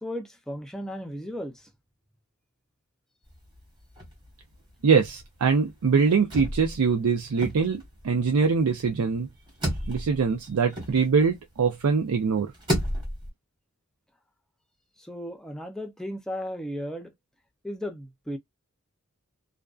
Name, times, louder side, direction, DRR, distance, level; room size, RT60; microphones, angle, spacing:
voice 1, 0.0-1.6 15.0-17.1 17.6-18.4, equal, ahead, 0.4 m, -35 dB
sound 1, 3.3-4.5 4.8-4.9 5.2-11.6 12.1-13.3, equal, 20° right, 1.2 m, -33 dB
voice 2, 4.8-9.3 9.9-12.5, right 5 dB, 85° right, 0.5 m, -23 dB
2.5 x 2.2 x 2.3 m
head